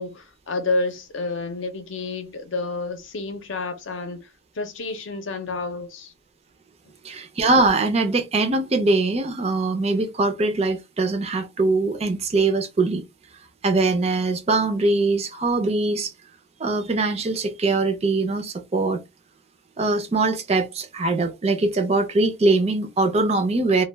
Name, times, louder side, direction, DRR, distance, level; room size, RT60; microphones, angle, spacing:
voice 1, 0.0-4.3 4.6-6.1, left 3 dB, 70° left, 0.6 m, -29 dB
voice 2, 7.0-13.0 13.6-16.1 16.6-19.0 19.8-23.8, right 3 dB, 30° right, 0.4 m, -22 dB
2.2 x 2.2 x 3.2 m
head